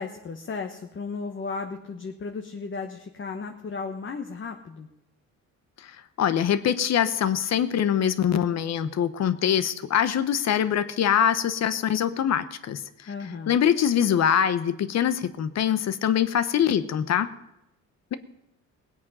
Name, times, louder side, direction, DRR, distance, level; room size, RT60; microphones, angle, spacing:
voice 1, 0.0-4.9 13.1-13.6, left 4 dB, 40° left, 4 dB, 1.2 m, -35 dB
voice 2, 5.8-13.1 13.5-17.3, left 9 dB, 60° left, 13 dB, 1.0 m, -24 dB
19.5 x 8.4 x 5.5 m, 0.87 s
cardioid pair, 90°, 30 cm